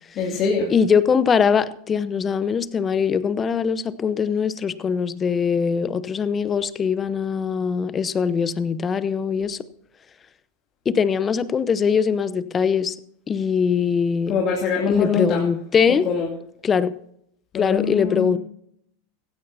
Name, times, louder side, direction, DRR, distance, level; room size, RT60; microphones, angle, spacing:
voice 1, 0.2-0.7 14.3-15.4 16.0-16.3 17.5-18.3, left 5 dB, 40° left, -2 dB, 2.5 m, -23 dB
voice 2, 0.7-9.6 10.8-13.0 13.3-14.4 14.9-16.1 16.6-16.9 17.5-18.4, left 6 dB, 25° left, 16 dB, 0.9 m, -22 dB
16.0 x 16.0 x 2.7 m, 0.71 s
hypercardioid pair, 90°, 0 cm